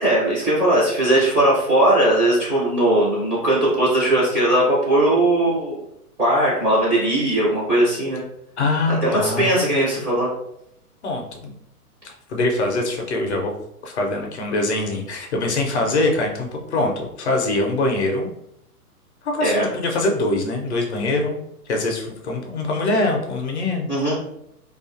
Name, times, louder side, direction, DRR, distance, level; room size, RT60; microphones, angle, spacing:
voice 1, 0.0-5.8 6.2-8.2 8.9-10.3 19.4-19.6 23.9-24.1, right 1 dB, 10° right, -9 dB, 0.5 m, -19 dB
voice 2, 8.6-9.5 11.0-11.5 12.0-13.5 13.8-18.3 19.2-21.4 21.7-23.9, left 2 dB, 50° left, 1 dB, 0.5 m, -23 dB
2.4 x 2.3 x 2.5 m, 0.76 s
figure-of-eight pair, 120°, 46 cm